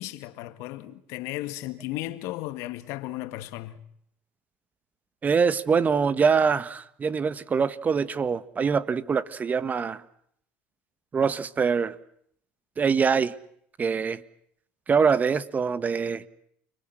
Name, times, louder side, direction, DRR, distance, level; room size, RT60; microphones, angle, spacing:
voice 1, 0.0-3.8, left 16 dB, 70° left, 2.0 m, -35 dB
voice 2, 5.2-10.0 11.1-11.9 12.8-13.3 13.8-14.2 14.9-16.2, right 6 dB, 30° right, 1.4 m, -24 dB
29.5 x 22.5 x 7.8 m
supercardioid pair, 85°, 5 cm